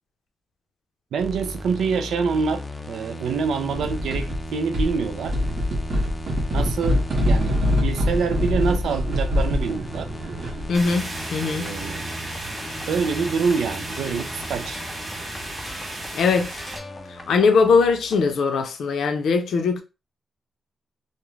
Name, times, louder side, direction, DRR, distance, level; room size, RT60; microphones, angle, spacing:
voice 1, 1.1-5.3 6.5-10.1 11.4-12.2 12.9-14.8, right 5 dB, 90° right, 0.4 m, -26 dB
sound 1, 1.2-18.3, equal, 15° left, 0.4 m, -37 dB
sound 2, 3.7-4.4 4.7-10.8, left 1 dB, 60° right, 0.7 m, -24 dB
voice 2, 10.7-11.7 16.1-16.5 17.1-19.8, left 4 dB, 70° left, 0.5 m, -20 dB
sound 3, 10.7-16.8, right 1 dB, 25° right, 0.8 m, -34 dB
2.4 x 2.0 x 3.1 m
wide cardioid pair, 170°, 0 cm